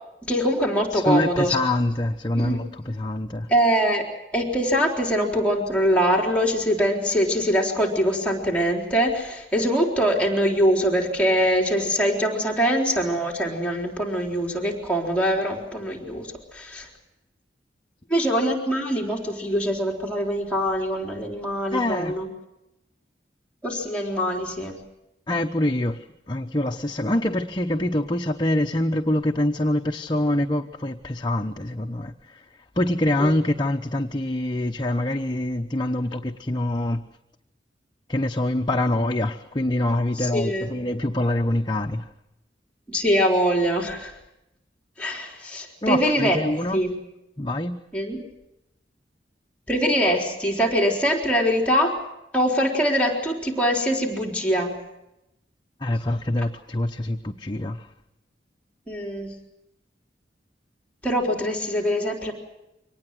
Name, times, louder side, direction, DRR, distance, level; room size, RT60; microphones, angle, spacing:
voice 1, 0.3-1.6 2.4-2.9 3.5-4.1 4.3-16.9 18.1-22.3 23.6-24.8 33.2-33.3 40.2-40.7 42.9-44.1 45.0-46.4 46.7-47.0 47.9-48.3 49.7-52.0 52.3-54.7 58.9-59.3 61.0-62.3, equal, 10° left, -1 dB, 3.9 m, -23 dB
voice 2, 0.9-3.5 21.7-22.1 25.3-32.4 32.8-37.0 38.1-42.1 45.8-46.8 47.4-47.8 55.8-57.9, left 1 dB, 25° left, 3 dB, 0.9 m, -25 dB
25.0 x 19.0 x 7.8 m, 0.89 s
head